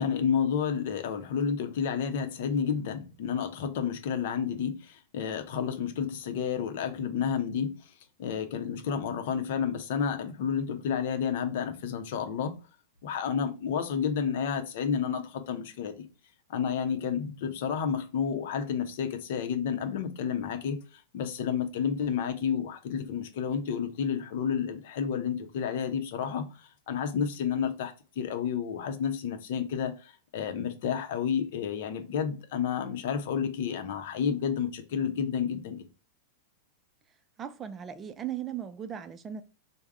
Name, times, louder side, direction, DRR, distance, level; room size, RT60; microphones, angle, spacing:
voice 1, 0.0-7.9 8.2-12.5 13.0-16.1 16.5-35.9, left 7 dB, 65° left, 0.6 m, -30 dB
voice 2, 37.4-39.4, right 9 dB, 25° right, 0.4 m, -37 dB
3.4 x 2.1 x 3.5 m
hypercardioid pair, 110°, 0 cm